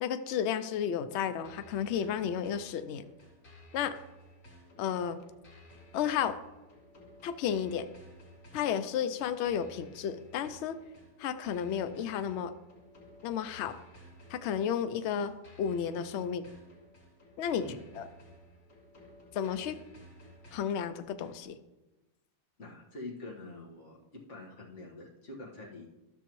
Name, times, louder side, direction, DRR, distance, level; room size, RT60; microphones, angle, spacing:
voice 1, 0.0-3.1 3.7-4.0 4.8-5.2 5.9-6.4 7.2-7.9 8.5-10.8 11.2-12.5 13.2-13.8 14.3-15.3 15.6-16.5 17.4-17.6 18.0-18.1 19.3-19.8 20.5-21.6, left 8 dB, 85° left, 11 dB, 0.6 m, -32 dB
sound 1, 1.4-21.4, equal, 65° left, 2.5 m, -56 dB
voice 2, 22.6-25.9, left 2 dB, 45° left, -3 dB, 1.8 m, -45 dB
13.0 x 6.9 x 3.0 m, 1.1 s
omnidirectional pair, 1.7 m